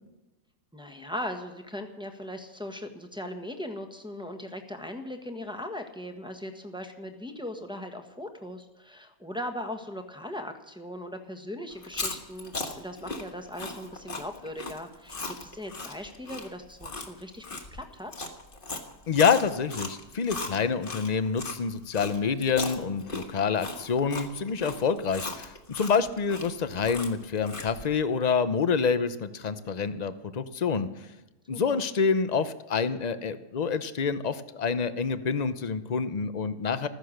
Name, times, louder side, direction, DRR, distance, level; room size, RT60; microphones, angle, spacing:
voice 1, 0.7-17.4 17.7-18.1 31.5-31.8, left 1 dB, 5° right, 3 dB, 1.2 m, -39 dB
Chewing mastication, 11.8-21.6 21.9-27.9, left 2 dB, 35° left, 1.6 m, -38 dB
voice 2, 19.1-30.9 31.5-36.9, left 5 dB, 50° left, 12 dB, 0.5 m, -27 dB
15.0 x 13.0 x 6.5 m, 1.0 s
omnidirectional pair, 1.7 m